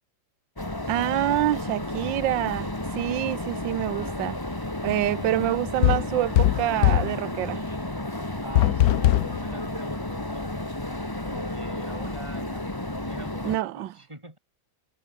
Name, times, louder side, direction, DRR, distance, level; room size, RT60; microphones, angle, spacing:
sound 1, 0.6-13.6, left 1 dB, 10° left, 2.1 m, -32 dB
voice 1, 0.9-4.4 4.8-7.6 13.4-13.9, right 14 dB, 75° right, 1.5 m, -26 dB
sound 2, 5.8-7.2 8.5-9.4, left 14 dB, 70° left, 0.9 m, -20 dB
voice 2, 8.4-10.5 11.2-14.4, right 1 dB, 15° right, 5.6 m, -44 dB
omnidirectional pair, 2.1 m